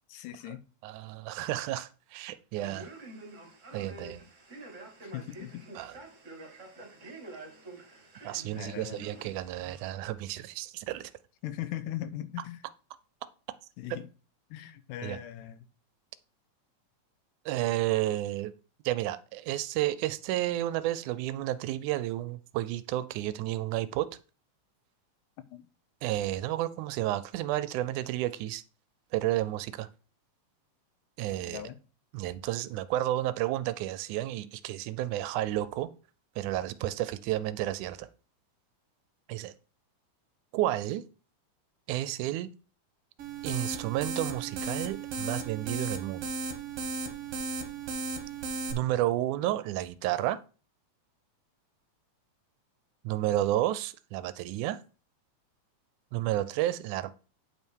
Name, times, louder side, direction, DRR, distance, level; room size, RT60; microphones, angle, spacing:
voice 1, 0.1-0.6 5.0-5.6 8.6-9.1 11.4-12.6 13.8-14.1 14.5-15.7 25.5-25.6 31.5-31.8, left 12 dB, 90° left, 2.3 m, -39 dB
voice 2, 0.8-2.9 3.7-4.2 5.8-6.0 8.2-11.1 15.0-15.2 17.5-18.5 18.9-24.1 26.0-28.6 29.1-29.9 31.2-31.6 32.1-35.9 36.4-38.1 39.3-39.5 40.5-41.0 41.9-42.5 43.4-46.3 48.7-50.4 53.0-54.8 56.1-57.1, right 14 dB, 80° right, 2.0 m, -31 dB
Male speech man speaking, 2.5-9.9, right 2 dB, 25° right, 2.2 m, -48 dB
sound 1, 43.2-48.7, right 3 dB, 60° right, 1.9 m, -35 dB
9.2 x 5.4 x 4.6 m
omnidirectional pair, 3.6 m